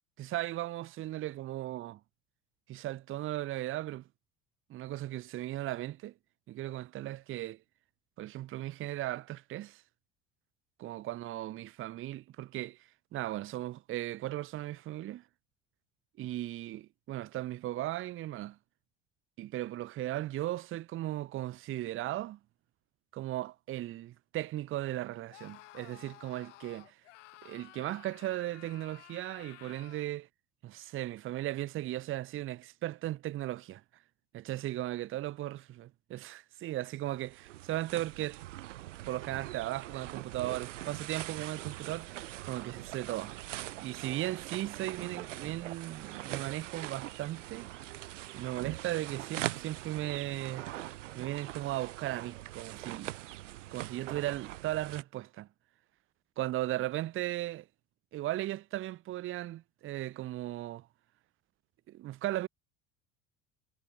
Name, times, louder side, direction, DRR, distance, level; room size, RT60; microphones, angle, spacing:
voice 1, 0.2-2.0 2.7-4.1 4.7-6.1 6.5-7.6 8.2-9.8 10.8-15.3 16.2-18.6 19.4-22.4 23.1-27.0 27.4-30.3 30.6-33.8 34.3-35.6 36.1-38.4 39.1-43.4 43.8-47.7 48.3-50.7 51.1-53.2 53.7-55.5 56.4-57.7 58.1-60.9 61.9-62.5, right 15 dB, 35° right, 0.7 m, -37 dB
Screaming, 25.3-30.1, left 17 dB, 70° left, 0.6 m, -54 dB
sound 1, 37.1-55.0, right 15 dB, 70° right, 0.8 m, -42 dB
figure-of-eight pair, 65°, 38 cm